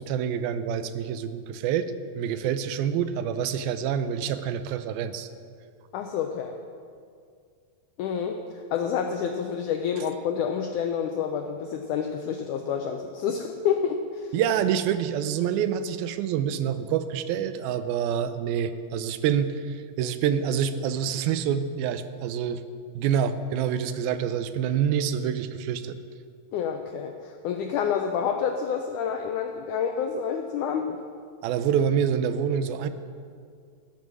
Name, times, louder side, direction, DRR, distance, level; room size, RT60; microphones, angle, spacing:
voice 1, 0.0-5.3 14.3-22.6 23.0-26.0 31.4-32.9, right 8 dB, 85° right, 11 dB, 2.5 m, -27 dB
voice 2, 5.9-6.5 8.0-14.3 26.5-31.0, left 7 dB, 85° left, 5 dB, 1.7 m, -28 dB
16.5 x 7.4 x 6.1 m, 2.2 s
omnidirectional pair, 4.3 m